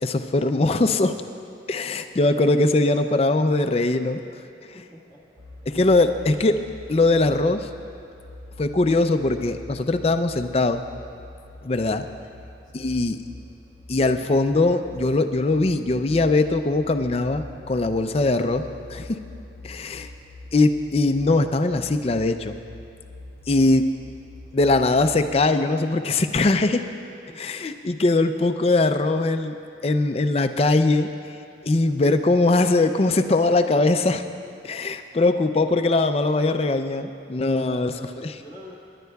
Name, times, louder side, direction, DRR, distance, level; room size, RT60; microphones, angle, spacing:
voice 1, 0.0-1.1 1.7-4.2 5.7-6.6 6.9-7.7 8.6-10.8 11.6-12.1 12.7-13.2 13.9-19.2 19.6-20.1 20.5-22.6 23.5-23.9 24.5-26.8 27.4-29.6 29.8-31.1 31.6-34.2 34.6-38.3, left 2 dB, 30° left, 8 dB, 0.4 m, -21 dB
voice 2, 4.7-5.2 11.5-11.7 27.3-27.6 37.6-38.1 38.4-38.8, equal, 25° right, -6 dB, 1.5 m, -45 dB
sound 1, 5.4-25.3, left 2 dB, 60° right, 1.5 m, -44 dB
27.5 x 11.0 x 2.3 m, 2.5 s
head